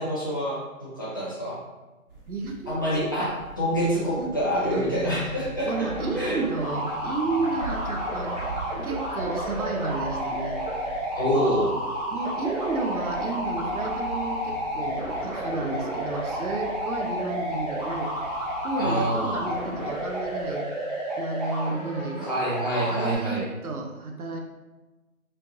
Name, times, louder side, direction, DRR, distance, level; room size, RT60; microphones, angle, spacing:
voice 1, 0.0-1.6 2.7-5.9 6.2-6.4 11.2-11.7 18.8-19.3 22.2-23.5, equal, 15° left, -10 dB, 0.6 m, -26 dB
sound 1, 2.1-20.5, right 3 dB, 15° right, 1.1 m, -42 dB
voice 2, 2.3-3.3 4.2-5.3 5.6-8.3 8.8-10.6 12.1-18.1 18.6-20.7 21.2-22.3 22.9-24.4, right 3 dB, 80° right, 3 dB, 0.9 m, -32 dB
sound 2, 5.7-23.1, equal, 30° right, 0.7 m, -31 dB
4.4 x 3.1 x 2.6 m, 1.1 s
hypercardioid pair, 160°, 43 cm